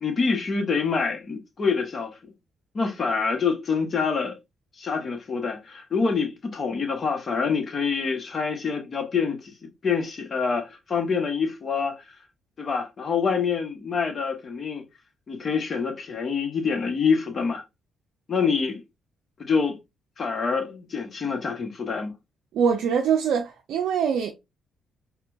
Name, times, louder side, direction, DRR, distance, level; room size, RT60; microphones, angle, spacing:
voice 1, 0.0-2.2 2.7-4.4 4.8-9.5 9.8-12.0 12.6-14.8 15.3-17.6 18.3-18.8 19.4-19.8 20.2-22.1, left 5 dB, 45° left, 1.0 m, -26 dB
voice 2, 22.5-24.3, right 7 dB, 70° right, 0.4 m, -23 dB
4.3 x 2.2 x 2.5 m
hypercardioid pair, 50°, 0 cm